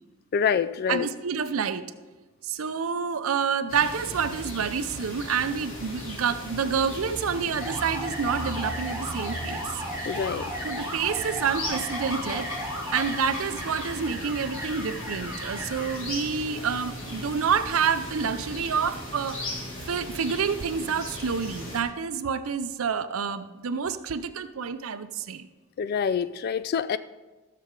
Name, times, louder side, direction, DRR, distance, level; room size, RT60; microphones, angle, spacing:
voice 1, 0.3-1.1 10.1-10.5 25.8-27.0, left 7 dB, 45° left, 14 dB, 0.3 m, -26 dB
voice 2, 0.9-1.9 2.4-9.7 10.6-12.5 12.9-19.4 19.9-25.5, right 6 dB, 85° right, 11 dB, 0.5 m, -28 dB
sound 1, 3.7-21.8, left 1 dB, 70° left, 2.7 m, -37 dB
sound 2, 7.5-16.0, equal, 10° right, 3.3 m, -36 dB
15.5 x 6.7 x 3.7 m, 1.2 s
head